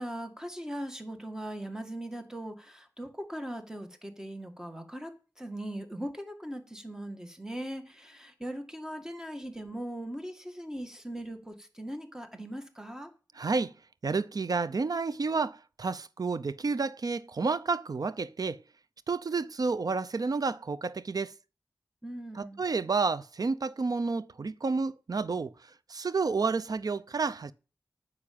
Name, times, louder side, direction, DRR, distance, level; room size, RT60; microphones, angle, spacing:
voice 1, 0.0-13.1 22.0-22.6, right 1 dB, 10° right, 2.0 m, -40 dB
voice 2, 13.4-13.7 14.0-18.6 19.1-21.3 22.3-25.5 25.9-27.5, right 4 dB, 60° right, 0.6 m, -30 dB
9.8 x 6.4 x 8.7 m
wide cardioid pair, 75°, 7 cm